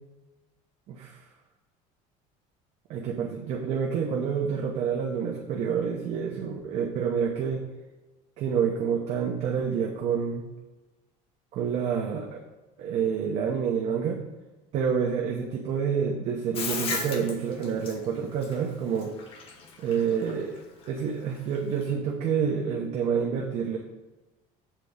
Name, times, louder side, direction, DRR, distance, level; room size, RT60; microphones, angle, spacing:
voice 1, 0.9-1.2 2.9-7.6 8.4-10.4 11.5-12.4 12.8-14.2 14.7-19.1 19.8-20.6 20.9-23.8, right 7 dB, 45° right, 0 dB, 0.9 m, -28 dB
Bathtub (filling or washing), 16.6-21.9, left 4 dB, 35° left, 1.1 m, -36 dB
7.5 x 4.2 x 6.5 m, 1.1 s
cardioid pair, 170°, 16 cm